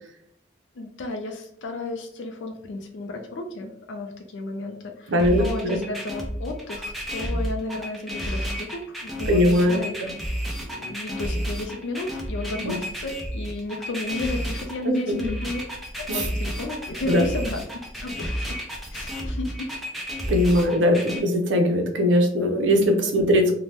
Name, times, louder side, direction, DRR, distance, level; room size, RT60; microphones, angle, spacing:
voice 1, 0.7-15.6 16.1-17.6 18.0-18.6 18.9-19.7 20.5-20.6 23.0-23.4, left 2 dB, 70° left, 3 dB, 0.4 m, -33 dB
voice 2, 5.1-5.8 9.3-10.1 12.6-12.7 14.8-15.3 16.1-16.2 17.1-17.2 20.3-23.5, equal, 70° right, 3 dB, 0.6 m, -21 dB
sound 1, 5.2-21.2, equal, ahead, 0.5 m, -31 dB
2.7 x 2.1 x 3.2 m, 0.70 s
head